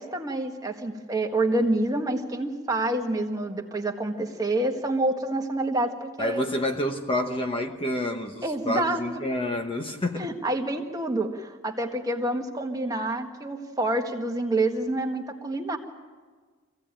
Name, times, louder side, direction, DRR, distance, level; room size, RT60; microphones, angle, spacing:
voice 1, 0.0-6.4 8.4-9.0 10.2-15.8, right 2 dB, 15° right, 1.6 m, -27 dB
voice 2, 6.2-10.3, left 1 dB, 25° left, 1.1 m, -28 dB
25.5 x 16.0 x 9.0 m
head